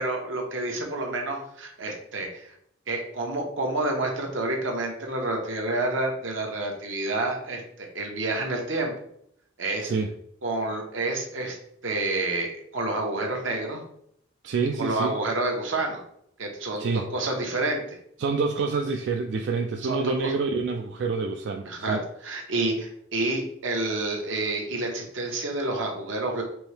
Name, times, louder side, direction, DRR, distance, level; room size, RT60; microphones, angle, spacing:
voice 1, 0.0-2.5 2.9-8.9 9.6-9.9 10.4-11.6 11.8-13.8 14.8-16.0 16.4-17.8 19.8-20.3 21.7-26.4, right 2 dB, 90° right, 2 dB, 1.0 m, -29 dB
voice 2, 14.4-15.2 16.8-17.1 18.2-22.0, right 4 dB, 65° right, 3 dB, 0.3 m, -27 dB
4.5 x 2.7 x 3.3 m, 0.71 s
head